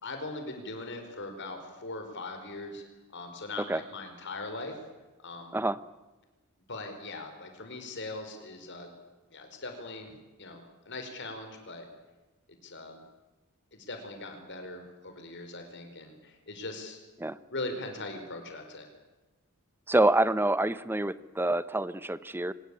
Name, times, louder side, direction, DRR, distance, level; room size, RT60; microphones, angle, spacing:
voice 1, 0.0-2.8 3.1-4.8 5.2-5.6 6.7-8.9 9.3-10.1 10.4-11.8 12.6-13.0 13.7-17.0 17.5-18.9, left 2 dB, 55° left, 5 dB, 5.1 m, -40 dB
voice 2, 19.9-22.5, right 2 dB, 10° right, 16 dB, 0.7 m, -26 dB
24.0 x 20.5 x 8.6 m, 1.2 s
head